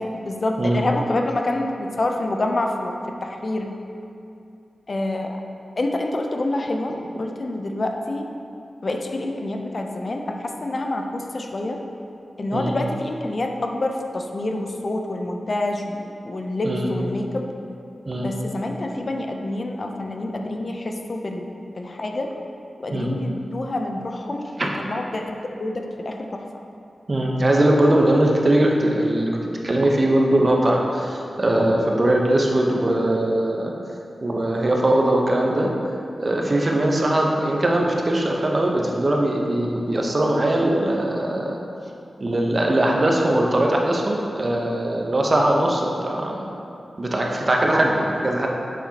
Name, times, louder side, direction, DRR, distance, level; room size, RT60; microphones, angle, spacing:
voice 1, 0.2-3.7 4.9-5.4 5.8-8.2 8.8-11.8 12.4-17.4 18.2-22.3 22.8-26.4 36.7-36.9, left 2 dB, 55° left, 3 dB, 0.6 m, -27 dB
voice 2, 27.1-29.4 29.6-33.7 34.2-35.7 36.2-41.6 42.2-46.4 47.0-48.5, right 1 dB, 45° right, -1 dB, 0.9 m, -20 dB
7.2 x 5.5 x 2.9 m, 2.6 s
cardioid pair, 45°, 0 cm